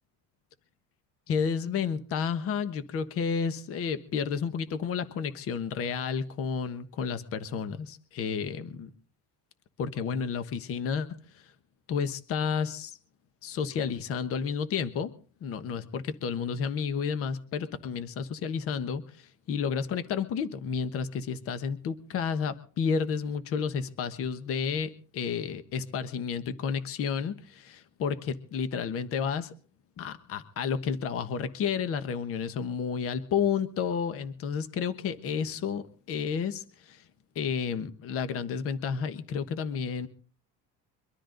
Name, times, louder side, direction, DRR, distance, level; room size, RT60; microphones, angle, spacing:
voice 1, 1.3-8.9 9.8-11.1 11.3-11.5 11.9-13.0 13.4-15.1 15.4-29.5 30.0-37.0 37.3-40.1, left 6 dB, 45° left, 11 dB, 1.3 m, -31 dB
23.5 x 13.0 x 3.9 m, 0.41 s
cardioid pair, 165°, 31 cm